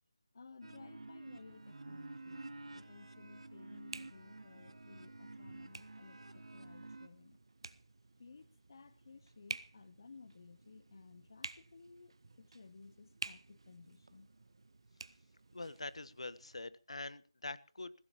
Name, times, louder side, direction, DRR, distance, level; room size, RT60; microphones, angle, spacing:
voice 1, 0.3-2.4 2.7-7.4 8.2-14.3, left 4 dB, 40° left, 0.6 m, -57 dB
sound 1, 0.6-7.1, right 2 dB, 85° right, 1.7 m, -51 dB
sound 2, 1.5-16.6, right 3 dB, 60° right, 0.9 m, -53 dB
voice 2, 15.5-17.9, left 2 dB, 85° left, 1.2 m, -44 dB
22.0 x 16.0 x 3.0 m
figure-of-eight pair, 175°, 3 cm